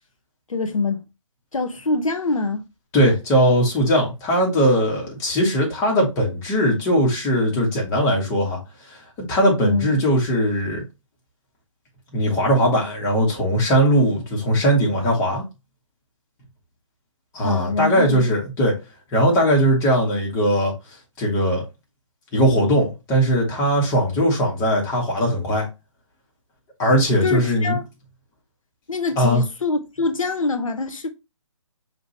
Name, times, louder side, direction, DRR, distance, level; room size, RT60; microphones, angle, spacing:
voice 1, 0.5-1.1 1.5-2.6 9.6-10.0 17.4-18.3 27.2-27.8 28.9-31.1, left 3 dB, 80° left, 0.8 m, -24 dB
voice 2, 2.9-8.6 8.9-9.0 9.3-10.8 12.1-15.4 17.3-18.8 19.1-20.7 21.2-21.6 22.3-25.7 26.8-27.8 29.2-29.4, equal, 20° left, 1.7 m, -19 dB
5.1 x 2.9 x 3.1 m
figure-of-eight pair, 145°, 17 cm